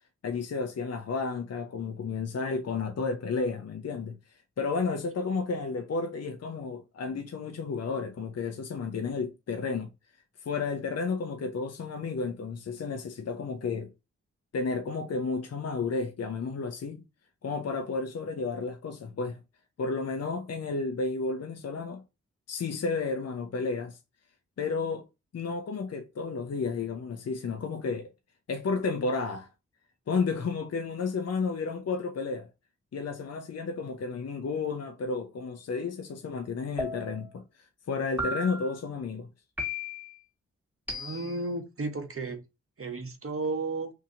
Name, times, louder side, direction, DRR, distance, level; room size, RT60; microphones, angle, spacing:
voice 1, 0.2-4.2 4.6-9.9 10.4-13.9 14.5-17.0 17.4-19.4 19.8-22.0 22.5-24.0 24.6-25.0 25.3-28.1 28.5-29.5 30.1-32.5 32.9-39.3, left 4 dB, 55° left, 0.6 m, -32 dB
sound 1, 36.8-37.4 38.2-38.8 39.6-40.2 40.9-41.5, left 1 dB, 5° right, 1.3 m, -35 dB
voice 2, 40.9-42.4 42.8-43.9, right 3 dB, 45° right, 1.1 m, -33 dB
2.8 x 2.7 x 3.7 m
cardioid pair, 40°, 30 cm